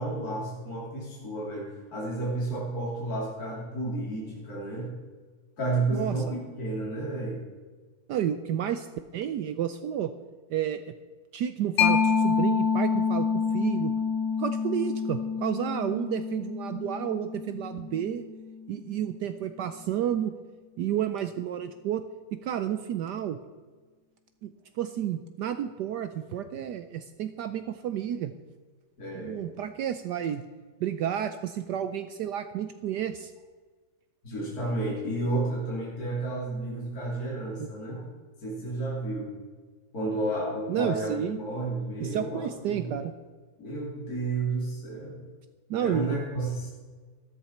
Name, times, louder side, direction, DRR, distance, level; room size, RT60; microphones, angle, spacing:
voice 1, 0.0-4.9 5.6-7.4 29.0-29.5 34.2-38.0 38.4-39.3 39.9-43.0 43.6-45.2 45.8-46.7, right 2 dB, 45° left, -6 dB, 3.6 m, -31 dB
voice 2, 5.9-6.4 8.1-8.9 9.1-10.1 10.5-10.8 11.3-13.3 13.5-13.9 14.4-18.3 18.7-20.3 20.8-22.0 22.3-23.4 24.4-24.5 24.8-28.3 29.1-30.4 30.8-33.3 40.7-41.4 42.0-43.1 45.7-46.2, right 10 dB, 75° right, 10 dB, 1.0 m, -31 dB
Mallet percussion, 11.8-19.1, left 6 dB, 75° left, 1.8 m, -28 dB
13.5 x 13.0 x 4.3 m, 1.4 s
omnidirectional pair, 2.2 m